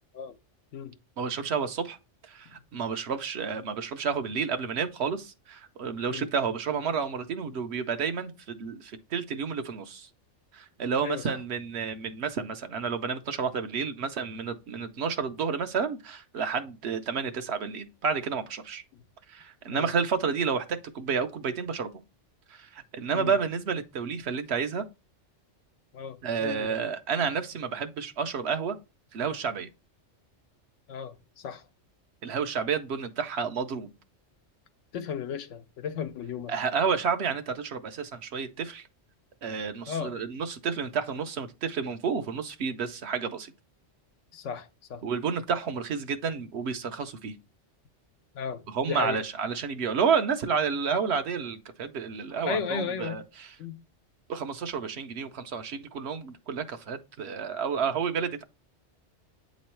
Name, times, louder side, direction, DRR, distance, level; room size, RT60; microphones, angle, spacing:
voice 1, 1.2-2.0 2.2-10.1 10.5-18.8 19.3-21.9 22.5-24.8 26.2-28.8 29.1-29.7 32.2-33.9 36.5-38.9 39.4-43.5 45.0-47.4 48.7-53.6 54.3-58.4, right 6 dB, 65° right, 0.9 m, -30 dB
voice 2, 11.0-11.4 18.9-19.0 19.7-19.9 23.1-23.3 25.9-26.8 30.9-31.6 34.9-36.5 39.9-40.2 44.3-45.0 48.3-49.2 52.4-53.2 53.6-53.8, left 7 dB, 85° left, 1.0 m, -35 dB
8.5 x 3.1 x 4.3 m
omnidirectional pair, 1.2 m